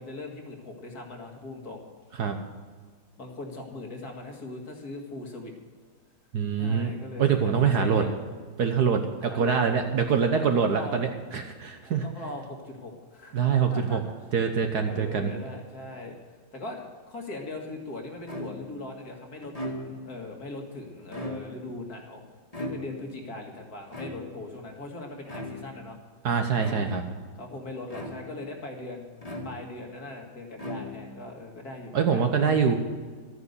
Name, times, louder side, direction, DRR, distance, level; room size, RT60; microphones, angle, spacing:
voice 1, 0.0-1.9 3.2-5.5 6.6-8.1 9.2-9.5 10.3-11.0 11.8-13.4 13.7-14.0 14.8-16.2 16.5-22.2 22.6-26.0 27.4-32.8, left 2 dB, 45° left, 1 dB, 2.3 m, -40 dB
voice 2, 6.3-6.9 7.2-8.0 8.6-12.0 13.3-14.0 14.3-15.3 26.2-27.0 31.9-32.8, right 6 dB, 60° right, 5 dB, 1.3 m, -24 dB
sound 1, 18.3-18.8 19.4-20.2 21.0-21.8 22.5-23.2 23.9-24.6 25.2-25.8 26.6-27.2 27.9-28.5 29.2-29.9 30.5-31.3, left 1 dB, 20° left, 2.0 m, -38 dB
13.5 x 9.6 x 8.0 m, 1.5 s
omnidirectional pair, 2.3 m